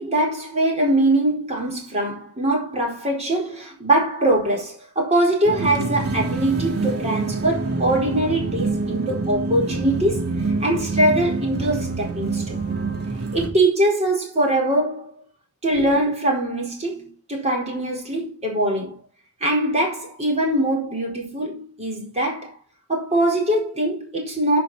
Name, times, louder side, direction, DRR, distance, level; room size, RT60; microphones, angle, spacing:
voice 1, 0.0-10.3 10.6-12.6 13.3-15.1 15.6-18.9 19.4-22.5 22.9-24.6, right 1 dB, 30° right, 4.5 m, -22 dB
sound 1, 5.4-13.5, right 3 dB, 50° right, 3.1 m, -26 dB
15.0 x 6.5 x 4.2 m
head